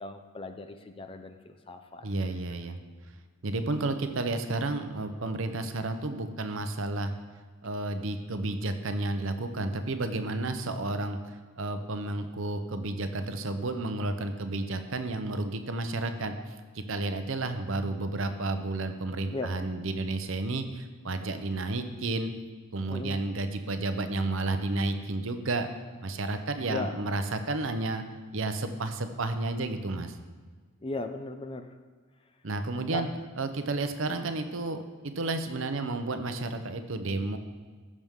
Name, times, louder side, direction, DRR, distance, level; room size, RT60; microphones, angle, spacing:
voice 1, 0.0-2.1 19.3-19.5 22.9-23.2 26.7-26.9 30.8-31.7 32.9-33.0, left 3 dB, 25° left, 7 dB, 0.5 m, -37 dB
voice 2, 2.0-2.8 3.4-7.1 7.6-22.3 22.7-25.7 26.0-28.0 28.3-30.2 32.4-33.1 33.4-37.4, right 2 dB, 60° right, 8 dB, 0.7 m, -31 dB
14.5 x 6.2 x 3.7 m, 1.5 s
head